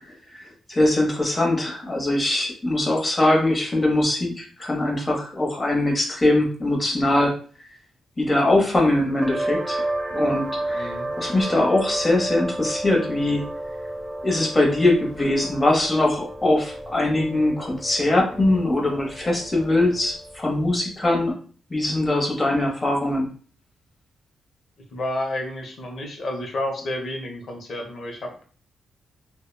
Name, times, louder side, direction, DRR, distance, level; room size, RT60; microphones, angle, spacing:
voice 1, 0.3-7.3 8.2-9.8 10.1-13.4 14.2-21.3 21.7-23.3, left 1 dB, 30° left, 0 dB, 0.9 m, -22 dB
sound 1, 9.2-20.5, right 1 dB, 15° right, 0.4 m, -32 dB
voice 2, 10.7-11.1 24.9-28.4, left 1 dB, 65° left, 1 dB, 0.7 m, -30 dB
2.8 x 2.1 x 2.2 m, 0.42 s
cardioid pair, 70°, 0 cm